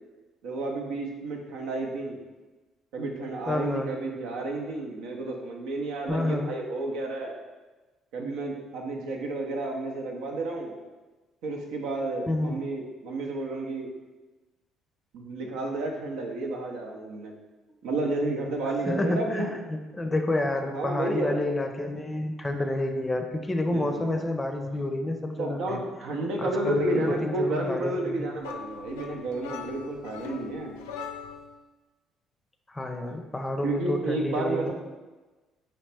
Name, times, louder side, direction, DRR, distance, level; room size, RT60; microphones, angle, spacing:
voice 1, 0.4-2.2 2.9-7.4 8.1-10.8 11.4-13.9 15.1-17.3 17.8-19.5 20.7-21.3 23.6-24.3 25.4-30.8 33.6-34.7, right 2 dB, 75° right, 0 dB, 0.6 m, -31 dB
voice 2, 3.5-3.9 6.1-6.5 12.3-12.6 18.9-19.4 19.7-25.8 26.4-28.3 32.7-34.7, left 1 dB, 20° left, 5 dB, 0.5 m, -29 dB
sound 1, 28.4-31.6, left 6 dB, 85° left, 0.3 m, -40 dB
4.1 x 2.9 x 3.3 m, 1.2 s
hypercardioid pair, 55°, 0 cm